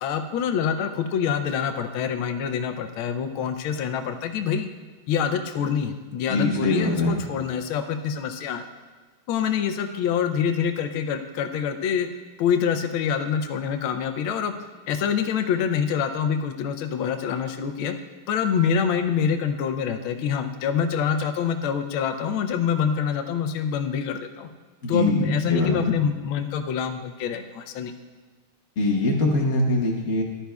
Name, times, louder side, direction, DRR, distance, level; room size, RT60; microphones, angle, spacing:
voice 1, 0.0-4.7 5.1-8.6 9.3-12.1 12.4-14.5 14.9-18.0 18.3-24.5 24.9-27.9, left 7 dB, 80° left, 6 dB, 1.5 m, -26 dB
voice 2, 6.3-7.2 24.8-25.9 28.8-30.2, left 2 dB, 45° left, -1 dB, 1.3 m, -23 dB
14.5 x 11.5 x 2.3 m, 1.4 s
omnidirectional pair, 2.3 m